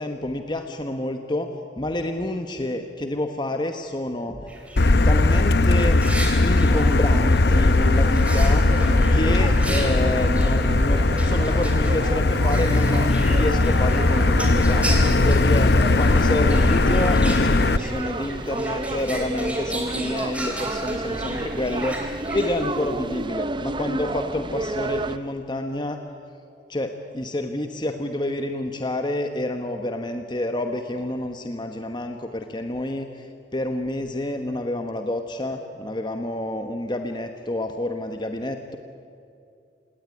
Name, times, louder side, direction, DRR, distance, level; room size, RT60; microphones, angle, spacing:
voice 1, 0.0-1.5 1.8-4.5 5.0-6.0 6.4-8.7 9.1-14.8 15.2-26.0 26.7-33.3 33.5-38.8, left 1 dB, 25° left, 6 dB, 1.2 m, -28 dB
sound 1, 4.5-23.2, right 1 dB, 5° right, 3.9 m, -36 dB
Motor vehicle (road), 4.8-17.8, left 2 dB, 60° left, 0.7 m, -19 dB
sound 2, 6.7-25.2, right 2 dB, 25° right, 0.7 m, -31 dB
28.5 x 18.0 x 9.8 m, 2.6 s
head